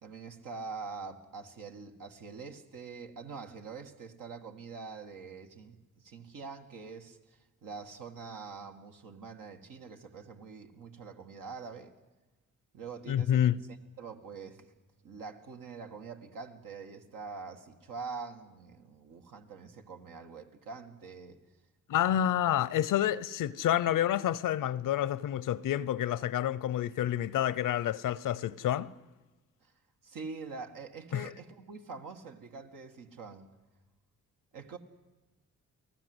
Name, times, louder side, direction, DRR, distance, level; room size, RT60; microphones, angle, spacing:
voice 1, 0.0-11.9 12.7-13.5 14.0-14.7 15.0-21.4 29.6-29.7 30.0-33.5 34.5-34.8, right 4 dB, 85° right, 2.0 m, -44 dB
voice 2, 13.1-13.6 21.9-28.9 31.1-31.3, left 11 dB, 85° left, 0.8 m, -28 dB
29.0 x 18.5 x 8.0 m
cardioid pair, 90°, 31 cm